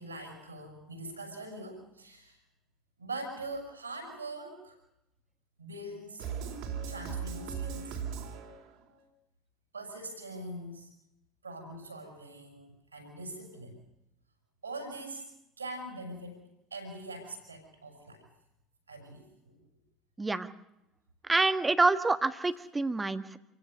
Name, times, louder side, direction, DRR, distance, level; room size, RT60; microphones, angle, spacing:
voice 1, 0.0-2.4 3.0-4.8 5.6-6.3 6.9-8.0 9.7-10.9 11.4-13.8 14.6-15.3 15.6-16.4 16.7-18.3 18.9-19.6, right 2 dB, 85° right, 3 dB, 6.5 m, -42 dB
sound 1, 6.2-8.9, right 7 dB, 60° right, 3.5 m, -38 dB
voice 2, 21.3-23.4, right 3 dB, 15° right, 10 dB, 1.6 m, -27 dB
28.0 x 16.5 x 6.7 m, 0.87 s
figure-of-eight pair, 65°, 0 cm